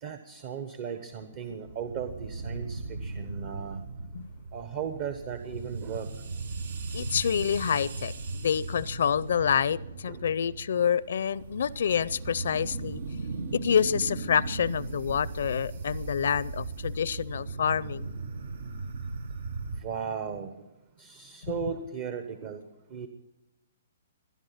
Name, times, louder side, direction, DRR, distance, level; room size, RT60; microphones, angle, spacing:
voice 1, 0.0-3.8 4.5-6.1 10.1-10.2 19.8-20.6 21.0-22.6 22.9-23.1, right 7 dB, 40° right, 1.1 m, -36 dB
sound 1, 1.7-19.8, right 3 dB, 70° right, 1.1 m, -37 dB
voice 2, 6.9-13.0 13.5-18.1 21.4-21.5, left 8 dB, 70° left, 0.5 m, -27 dB
20.5 x 10.5 x 5.8 m
hypercardioid pair, 145°, 0 cm